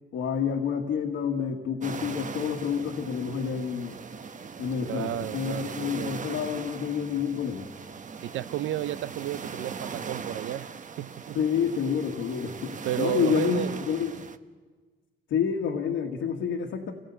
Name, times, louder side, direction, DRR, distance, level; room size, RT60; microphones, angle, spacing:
voice 1, 0.1-4.0 4.6-7.7 11.3-14.1 15.3-16.9, left 7 dB, 85° left, 1 dB, 2.0 m, -28 dB
sound 1, 1.8-14.4, right 5 dB, 40° right, 1.1 m, -40 dB
voice 2, 4.8-6.3 8.2-10.7 11.0-11.4 12.8-13.9, right 13 dB, 80° right, 16 dB, 0.7 m, -32 dB
27.0 x 18.0 x 8.4 m, 1.4 s
cardioid pair, 90°, 20 cm